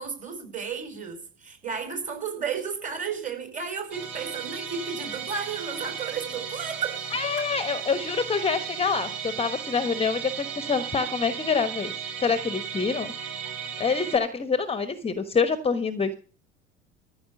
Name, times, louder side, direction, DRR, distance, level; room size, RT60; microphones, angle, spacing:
voice 1, 0.0-7.0 13.4-13.5, right 6 dB, 25° right, 5 dB, 5.1 m, -33 dB
Musical instrument, 3.9-14.2, right 7 dB, 55° right, 7.7 m, -35 dB
voice 2, 7.1-11.9 12.2-13.1 13.8-16.2, left 5 dB, 20° left, 11 dB, 1.2 m, -26 dB
14.5 x 6.0 x 8.3 m, 0.39 s
figure-of-eight pair, 70°, 31 cm